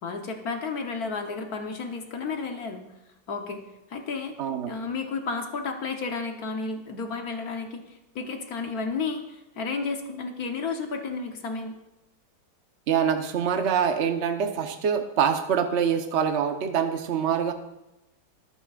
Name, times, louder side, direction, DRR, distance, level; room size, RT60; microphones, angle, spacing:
voice 1, 0.0-2.8 3.3-3.6 3.9-4.3 4.7-11.7, left 4 dB, 55° left, 4 dB, 1.3 m, -32 dB
voice 2, 4.4-4.7 12.9-17.5, right 7 dB, 50° right, 6 dB, 0.9 m, -25 dB
24.0 x 8.5 x 2.4 m, 0.93 s
omnidirectional pair, 2.2 m